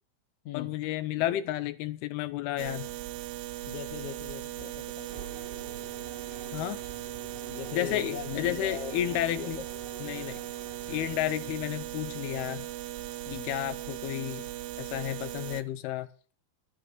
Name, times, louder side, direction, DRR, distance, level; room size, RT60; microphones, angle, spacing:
voice 1, 0.5-2.9 6.5-6.8 7.7-9.6 10.0-10.4 10.9-12.7 13.3-14.5 14.8-16.1, left 13 dB, 85° left, 12 dB, 2.7 m, -32 dB
sound 1, 2.6-15.6, right 14 dB, 75° right, 2.4 m, -38 dB
voice 2, 3.7-5.2 7.5-9.6 10.0-10.1 13.3-13.5, left 9 dB, 65° left, 7 dB, 2.1 m, -41 dB
sound 2, 5.1-11.7, right 1 dB, 20° right, 1.4 m, -50 dB
11.5 x 7.7 x 7.4 m, 0.40 s
omnidirectional pair, 4.4 m